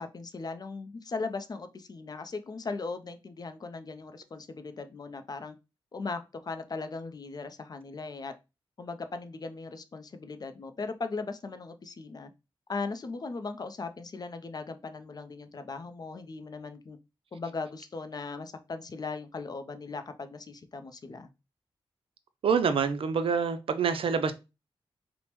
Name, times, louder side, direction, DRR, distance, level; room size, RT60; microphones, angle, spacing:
voice 1, 0.0-5.6 5.9-8.3 8.8-12.3 12.7-17.0 17.3-21.3, left 4 dB, 45° left, 0.4 m, -38 dB
voice 2, 22.4-24.3, right 6 dB, 70° right, 0.4 m, -26 dB
3.2 x 2.0 x 2.9 m
cardioid pair, 65°, 10 cm